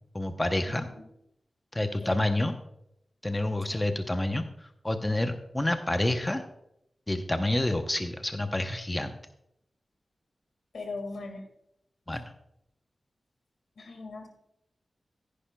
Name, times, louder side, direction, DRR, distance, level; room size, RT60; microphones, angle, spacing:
voice 1, 0.1-0.9 1.7-2.6 3.2-6.4 7.1-9.1 12.1-12.2, left 1 dB, 20° left, 7 dB, 0.7 m, -28 dB
voice 2, 10.7-11.4 13.8-14.3, left 3 dB, 80° left, 5 dB, 1.9 m, -39 dB
14.0 x 10.0 x 2.2 m, 0.79 s
wide cardioid pair, 80°, 0 cm